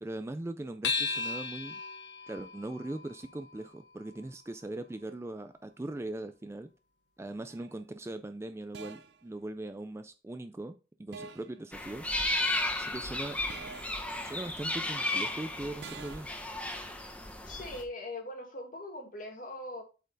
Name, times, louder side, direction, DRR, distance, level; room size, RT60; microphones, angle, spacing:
voice 1, 0.0-1.8 2.3-6.7 7.2-12.1 12.8-13.4 14.2-16.3, right 2 dB, 15° right, 9 dB, 0.3 m, -40 dB
sound 1, 0.8-5.6, left 4 dB, 75° left, 1.0 m, -38 dB
sound 2, 7.5-7.7 8.7-9.2 11.1-11.6 13.5-14.1 15.8-16.4, right 5 dB, 65° right, 0.6 m, -46 dB
sound 3, 11.7-17.8, left 2 dB, 5° left, 0.8 m, -34 dB
voice 2, 17.4-19.8, left 1 dB, 45° left, 3 dB, 1.9 m, -41 dB
8.1 x 4.4 x 3.9 m, 0.33 s
head